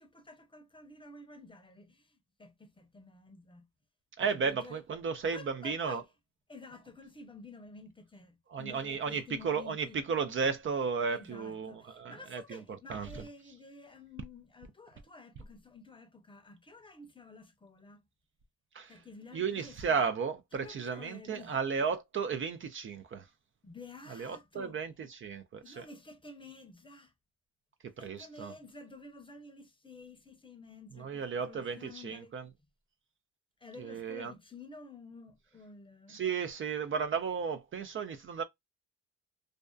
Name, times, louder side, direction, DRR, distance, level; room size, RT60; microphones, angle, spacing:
voice 1, 0.0-3.7 4.2-4.8 5.3-6.0 6.5-10.0 11.1-18.0 18.9-20.0 20.5-21.5 23.6-24.8 25.6-27.1 28.0-32.4 33.6-36.2, left 3 dB, 15° left, 0.7 m, -51 dB
voice 2, 4.2-6.0 8.5-12.6 12.9-13.2 18.7-18.9 19.3-23.2 24.1-25.9 28.0-28.5 31.0-32.4 33.8-34.3 36.1-38.4, right 6 dB, 45° right, 0.5 m, -34 dB
2.5 x 2.3 x 2.2 m
cardioid pair, 90°, 30 cm